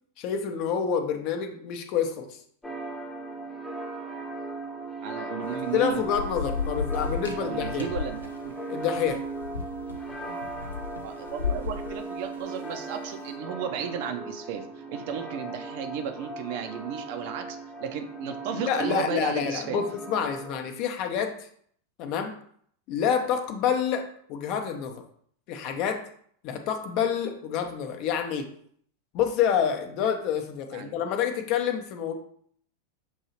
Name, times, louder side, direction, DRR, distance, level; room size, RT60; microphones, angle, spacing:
voice 1, 0.2-2.4 5.7-7.8 8.7-9.2 18.5-21.3 22.0-22.3 22.9-25.0 25.5-26.0 26.4-28.5 29.1-32.1, left 8 dB, 40° left, 5 dB, 0.6 m, -28 dB
sound 1, 2.6-20.6, right 2 dB, 10° left, 0.8 m, -38 dB
voice 2, 5.0-6.0 7.4-8.5 11.0-19.8 30.7-30.9, right 8 dB, 50° right, 6 dB, 0.5 m, -34 dB
Thunder / Rain, 5.4-13.1, left 5 dB, 75° left, 0.6 m, -35 dB
6.3 x 2.7 x 2.9 m, 0.62 s
figure-of-eight pair, 90°, 0 cm